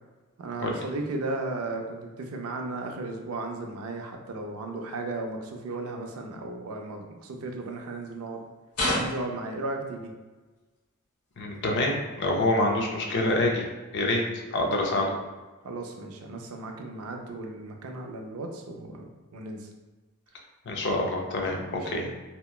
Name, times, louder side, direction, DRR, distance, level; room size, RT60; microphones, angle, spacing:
voice 1, 0.4-8.4 8.9-10.1 15.6-19.7 21.5-22.1, right 2 dB, 70° right, 3 dB, 0.4 m, -35 dB
sound 1, 8.7-9.4 12.5-12.6, left 1 dB, 90° left, 0.8 m, -27 dB
voice 2, 11.4-13.7 13.9-14.2 14.5-15.2 20.7-22.1, left 2 dB, 50° left, 0 dB, 0.4 m, -26 dB
2.8 x 2.1 x 2.2 m, 1.3 s
head